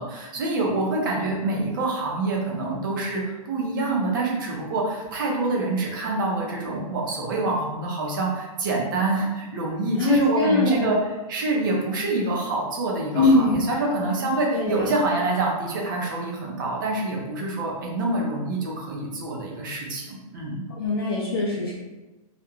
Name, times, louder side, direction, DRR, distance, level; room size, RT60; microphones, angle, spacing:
voice 1, 0.0-11.0 11.3-20.6, right 2 dB, 35° right, -2 dB, 0.5 m, -26 dB
voice 2, 10.0-10.9 13.1-13.6 14.5-14.9 20.7-21.7, left 2 dB, 40° left, -4 dB, 0.4 m, -21 dB
2.4 x 2.1 x 2.9 m, 1.1 s
hypercardioid pair, 170°, 19 cm